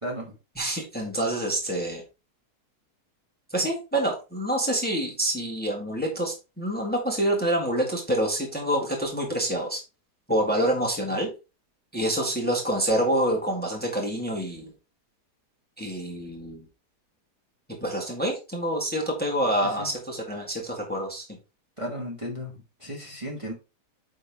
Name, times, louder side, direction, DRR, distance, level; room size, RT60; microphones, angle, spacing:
voice 1, 0.0-0.3 19.6-19.9 21.8-23.5, equal, 20° right, -1 dB, 1.4 m, -35 dB
voice 2, 0.6-2.0 3.5-9.8 10.3-11.3 11.9-14.7 15.8-16.6 17.8-21.2, right 1 dB, 5° left, 0 dB, 1.5 m, -27 dB
9.2 x 3.7 x 3.5 m, 0.30 s
omnidirectional pair, 1.8 m